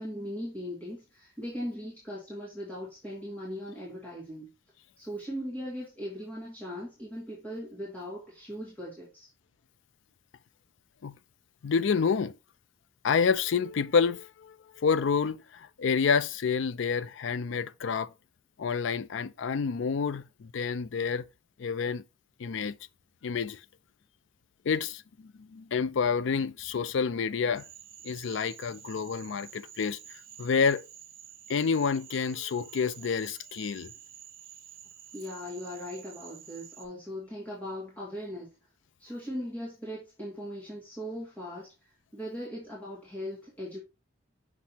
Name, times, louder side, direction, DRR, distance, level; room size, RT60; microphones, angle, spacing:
voice 1, 0.0-4.5 5.0-9.3 35.1-38.5 39.0-43.8, equal, 10° left, 2.1 m, -39 dB
voice 2, 11.6-12.4 13.0-18.1 18.6-21.2 21.6-22.0 22.4-22.8 23.2-23.6 24.7-27.6 28.0-30.0 30.4-30.8 31.5-33.9, left 5 dB, 70° left, 0.4 m, -28 dB
Cricket / Frog, 27.5-36.9, right 10 dB, 85° right, 1.1 m, -50 dB
6.2 x 6.0 x 2.8 m
head